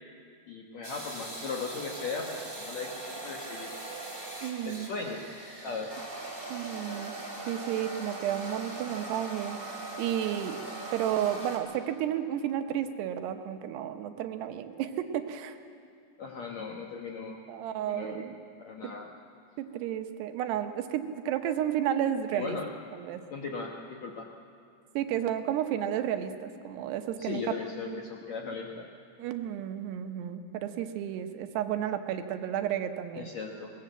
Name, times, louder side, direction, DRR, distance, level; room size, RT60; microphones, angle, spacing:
voice 1, 0.5-3.7 4.6-5.2 5.6-5.9 16.2-17.4 17.9-18.3 18.6-19.1 22.3-22.7 23.3-23.8 24.0-24.3 27.2-28.9 33.2-33.7, left 5 dB, 65° left, 0 dB, 1.7 m, -37 dB
sound 1, 0.8-11.6, right 2 dB, 15° right, 3.0 m, -40 dB
voice 2, 4.4-4.9 6.5-7.1 7.5-9.6 10.0-10.6 10.9-15.6 17.5-18.3 19.6-22.6 22.9-23.2 25.0-27.5 27.9-28.0 29.2-33.3, right 10 dB, 80° right, 8 dB, 3.0 m, -32 dB
20.5 x 19.5 x 7.9 m, 2.3 s
omnidirectional pair, 4.8 m